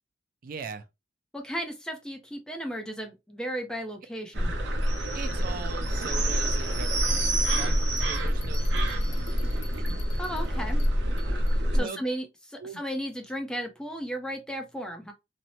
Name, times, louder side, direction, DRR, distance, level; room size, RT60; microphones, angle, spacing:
voice 1, 0.4-0.9 5.1-7.7 8.1-9.8 11.7-12.0 12.6-12.8, right 5 dB, 55° right, 0.4 m, -41 dB
voice 2, 1.3-4.5 10.2-10.8 11.7-15.1, equal, 5° left, 0.5 m, -35 dB
sound 1, 4.3-11.8, equal, 75° right, 0.7 m, -26 dB
Bell, 8.0-11.6, left 4 dB, 75° left, 0.7 m, -50 dB
2.7 x 2.0 x 3.0 m
head